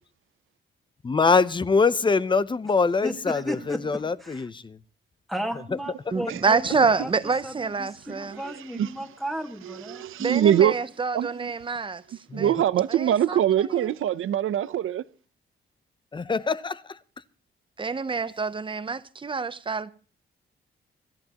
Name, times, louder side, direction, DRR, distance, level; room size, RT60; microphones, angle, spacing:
voice 1, 1.0-4.8 12.3-12.5 16.1-17.0, left 4 dB, 25° left, 0.6 m, -24 dB
voice 2, 3.0-4.5 5.3-7.1 7.4-10.1, equal, ahead, 1.7 m, -35 dB
voice 3, 6.1-8.4 10.2-12.5 12.9-13.9 17.8-19.9, right 4 dB, 25° right, 0.7 m, -27 dB
voice 4, 8.3-8.9 9.6-10.7 11.1-11.5 12.3-15.0, right 10 dB, 85° right, 0.7 m, -23 dB
25.5 x 13.5 x 2.9 m
wide cardioid pair, 140°, 21 cm